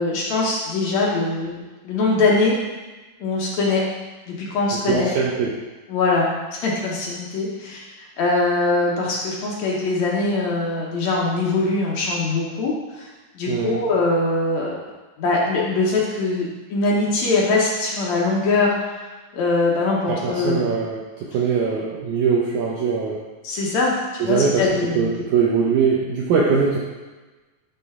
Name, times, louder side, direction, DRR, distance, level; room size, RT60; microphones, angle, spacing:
voice 1, 0.0-1.6 1.8-2.5 3.2-3.8 4.3-5.1 5.9-7.8 8.2-13.1 13.4-14.8 15.2-18.9 19.3-20.7 23.4-25.2, left 3 dB, 70° left, -4 dB, 1.8 m, -22 dB
voice 2, 4.9-5.5 13.5-13.8 20.1-21.0 21.3-23.2 24.2-24.6 25.0-26.8, right 5 dB, 75° right, -4 dB, 1.8 m, -21 dB
11.0 x 3.8 x 3.6 m, 1.2 s
omnidirectional pair, 4.2 m